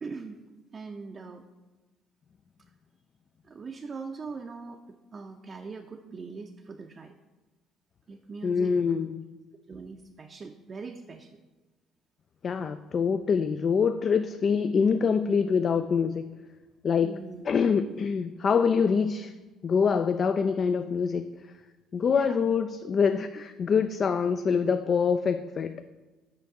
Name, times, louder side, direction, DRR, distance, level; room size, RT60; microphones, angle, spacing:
voice 1, 0.0-0.4 0.7-1.5 3.4-4.8 5.1-7.1 8.1-8.8 9.7-11.4 17.0-17.5 22.1-22.6, right 4 dB, 40° right, 3 dB, 0.5 m, -41 dB
voice 2, 8.4-9.3 12.4-16.3 16.8-17.1 17.4-19.3 19.6-21.3 21.9-25.8, left 6 dB, 45° left, 10 dB, 0.3 m, -25 dB
5.8 x 5.2 x 4.8 m, 1.2 s
hypercardioid pair, 55°, 0 cm